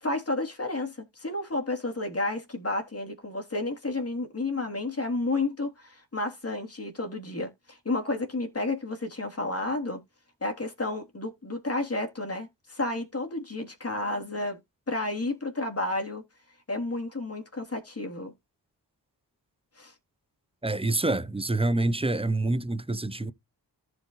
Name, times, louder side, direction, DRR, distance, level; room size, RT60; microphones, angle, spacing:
voice 1, 0.0-10.0 10.4-14.6 14.9-16.2 16.7-18.3 19.8-19.9, left 2 dB, 35° left, 3.2 m, -31 dB
voice 2, 20.6-23.3, right 2 dB, 15° right, 0.7 m, -27 dB
14.5 x 5.0 x 3.1 m
cardioid pair, 65°, 42 cm